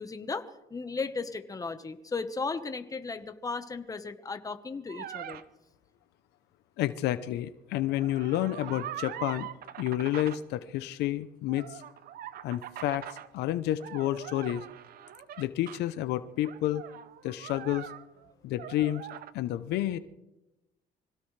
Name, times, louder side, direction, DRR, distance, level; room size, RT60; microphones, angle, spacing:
voice 1, 0.0-5.4, left 4 dB, 20° left, 9 dB, 1.2 m, -36 dB
sound 1, 4.9-5.4 7.8-10.4 11.5-13.3 13.8-15.8 16.4-18.3 18.6-19.3, right 11 dB, 60° right, 0.8 m, -42 dB
voice 2, 6.8-9.5 9.8-11.8 12.4-13.0 13.3-14.6 15.4-16.8 17.2-17.9 18.4-19.1 19.3-20.0, left 13 dB, 80° left, 13 dB, 0.7 m, -30 dB
25.5 x 17.0 x 3.3 m, 0.97 s
cardioid pair, 110°, 17 cm